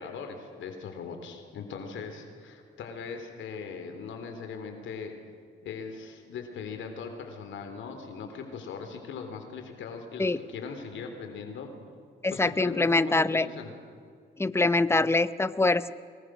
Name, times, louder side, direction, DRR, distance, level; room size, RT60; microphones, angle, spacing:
voice 1, 0.0-5.1 5.6-11.7 12.3-13.7, left 5 dB, 75° left, 5 dB, 3.6 m, -40 dB
voice 2, 12.2-13.5 14.4-15.9, left 2 dB, 10° left, 14 dB, 0.8 m, -24 dB
25.0 x 22.0 x 6.4 m, 2.2 s
cardioid pair, 90°, 20 cm